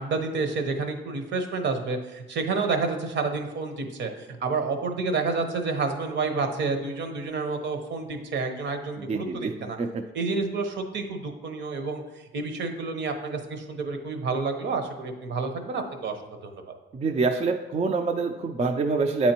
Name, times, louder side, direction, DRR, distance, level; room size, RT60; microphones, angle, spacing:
voice 1, 0.0-9.8 10.1-12.0 12.3-16.2 16.4-16.6, right 4 dB, 65° right, 6 dB, 0.9 m, -29 dB
voice 2, 9.1-10.0 16.9-19.3, right 4 dB, 35° right, 3 dB, 0.4 m, -26 dB
8.4 x 4.3 x 2.9 m, 1.0 s
cardioid pair, 90°, 20 cm